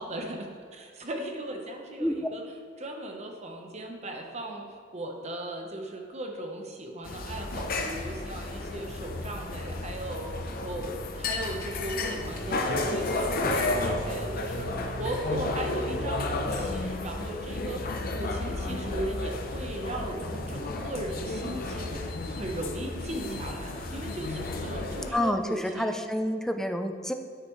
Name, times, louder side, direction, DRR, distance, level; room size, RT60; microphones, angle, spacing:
voice 1, 0.0-2.4 2.8-10.3 10.6-22.0 22.3-25.9, right 1 dB, 35° right, 2 dB, 1.0 m, -37 dB
sound 1, 7.0-25.1, left 2 dB, 50° left, 0.8 m, -32 dB
voice 2, 25.1-27.1, left 1 dB, 5° left, 5 dB, 0.4 m, -28 dB
9.6 x 8.1 x 3.2 m, 2.1 s
head